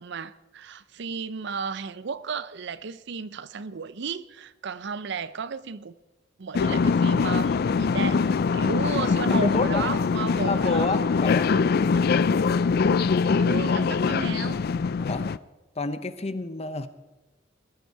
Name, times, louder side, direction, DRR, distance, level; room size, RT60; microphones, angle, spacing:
voice 1, 0.0-5.9 6.4-11.0 11.5-12.6 13.4-14.6, right 5 dB, 65° right, 0.6 m, -34 dB
sound 1, 6.5-15.4, left 5 dB, 55° left, 0.4 m, -23 dB
voice 2, 9.3-9.9 10.4-11.6 15.0-15.3 15.8-16.9, left 3 dB, 35° left, 0.8 m, -29 dB
20.0 x 12.0 x 4.7 m
head